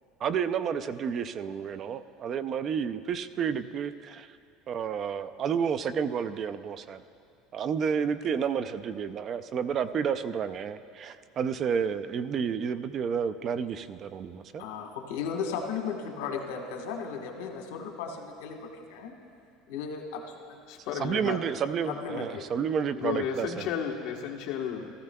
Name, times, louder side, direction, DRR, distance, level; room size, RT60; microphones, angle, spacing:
voice 1, 0.2-4.3 4.7-7.0 7.5-14.6 21.0-23.7, right 7 dB, 35° right, 13 dB, 0.3 m, -30 dB
voice 2, 14.6-19.1 19.7-20.6 21.9-22.4, left 6 dB, 90° left, 2 dB, 1.3 m, -36 dB
voice 3, 20.7-21.4 22.9-24.9, left 8 dB, 55° left, 0 dB, 1.1 m, -33 dB
15.5 x 14.0 x 2.2 m, 2.5 s
cardioid pair, 140°, 0 cm